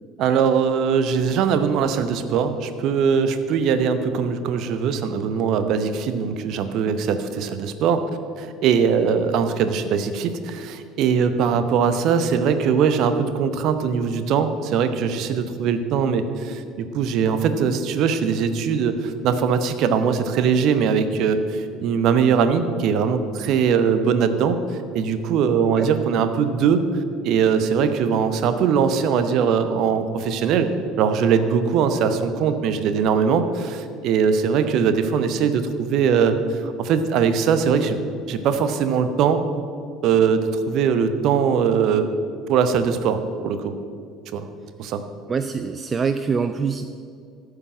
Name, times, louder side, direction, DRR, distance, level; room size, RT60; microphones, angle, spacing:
voice 1, 0.2-8.0 8.4-24.6 24.9-26.8 27.2-30.7 31.0-38.0 38.3-39.4 40.0-42.1 42.5-43.7 44.3-44.4 44.8-45.0, right 6 dB, 50° right, 10 dB, 0.8 m, -21 dB
voice 2, 45.3-46.9, right 5 dB, 30° right, 10 dB, 0.4 m, -24 dB
13.5 x 4.9 x 7.5 m, 2.3 s
figure-of-eight pair, 60°, 0 cm